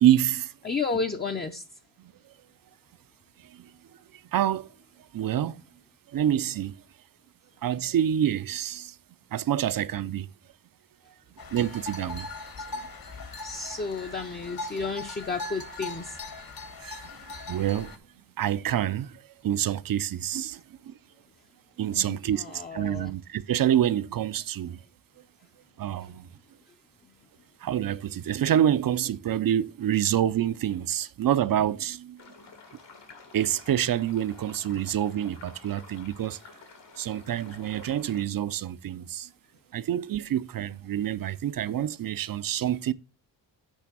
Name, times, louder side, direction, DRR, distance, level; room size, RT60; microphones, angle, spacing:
voice 1, 0.0-0.5 2.0-2.1 3.4-3.7 4.3-4.7 5.1-5.6 6.1-6.7 7.6-9.0 9.3-10.3 11.5-12.3 12.7-12.8 16.8-17.0 17.5-17.9 18.4-20.9 21.8-24.8 25.8-26.3 27.6-32.2 33.3-36.4 37.0-39.3 39.7-42.9, right 11 dB, 50° right, 0.5 m, -27 dB
voice 2, 0.6-1.6 12.6-12.7 13.4-16.2 21.9-23.1 26.0-26.1 26.7-26.8, left 4 dB, 20° left, 0.5 m, -32 dB
sound 1, 11.4-18.0, left 2 dB, 55° left, 1.2 m, -40 dB
sound 2, 32.2-38.2, left 4 dB, 75° left, 1.7 m, -50 dB
8.2 x 3.4 x 6.0 m
wide cardioid pair, 105°, 44 cm